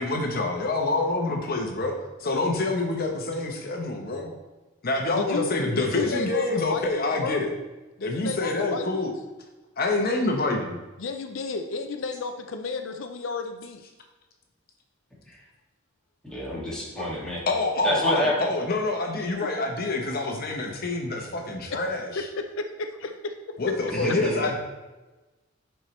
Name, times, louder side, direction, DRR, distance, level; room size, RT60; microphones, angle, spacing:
voice 1, 0.0-1.9 2.2-4.3 4.8-7.5 8.0-9.1 9.8-10.8 17.0-17.1 17.5-22.2 23.6-24.6, left 2 dB, 50° left, 2 dB, 0.9 m, -26 dB
voice 2, 5.1-5.5 5.8-7.4 8.0-9.1 11.0-13.8 21.2-21.3 21.7-21.8 22.2-23.3, left 4 dB, 75° left, 6 dB, 0.5 m, -32 dB
voice 3, 16.2-17.4 17.8-18.3 23.9-24.5, equal, 5° left, -7 dB, 2.0 m, -28 dB
10.5 x 4.5 x 3.2 m, 1.1 s
head